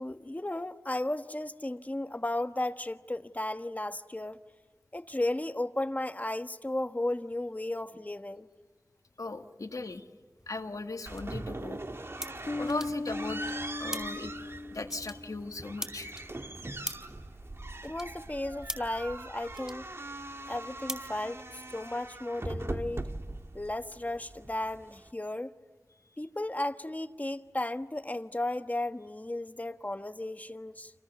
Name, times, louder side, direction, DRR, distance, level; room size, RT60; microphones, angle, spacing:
voice 1, 0.0-4.4 4.9-8.5 17.8-19.8 20.5-21.4 21.7-23.0 23.5-25.5 26.2-30.9, left 1 dB, 25° left, 1.3 m, -34 dB
voice 2, 9.2-10.0 10.5-11.8 12.6-13.4 13.8-14.3 14.7-16.1, left 3 dB, 80° left, 1.8 m, -38 dB
sound 1, 10.4-21.9, equal, 10° right, 4.9 m, -46 dB
sound 2, 11.1-25.1, right 2 dB, 45° right, 1.4 m, -41 dB
sound 3, 12.5-15.8, left 2 dB, 55° left, 1.4 m, -38 dB
29.5 x 27.5 x 7.1 m
wide cardioid pair, 50°, 6 cm